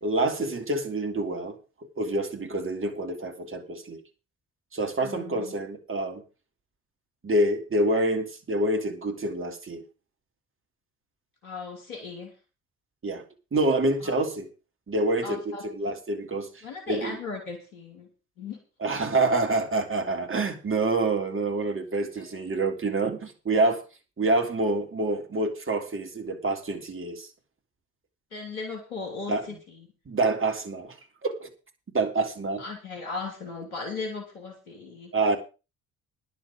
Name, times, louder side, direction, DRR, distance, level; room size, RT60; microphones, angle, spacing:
voice 1, 0.0-1.6 2.0-4.0 4.7-6.2 7.2-9.8 13.0-13.2 13.5-14.5 14.9-17.2 18.8-23.8 24.2-27.3 29.3-29.4 30.1-31.0 31.2-31.5 31.9-32.6 35.1-35.4, right 2 dB, 30° right, 3.5 m, -27 dB
voice 2, 5.0-5.5 11.4-12.3 14.0-14.1 15.2-15.9 16.6-18.1 18.4-18.6 22.1-22.4 28.3-29.9 32.6-35.1, left 4 dB, 85° left, 3.0 m, -37 dB
10.5 x 6.8 x 8.7 m
hypercardioid pair, 50°, 42 cm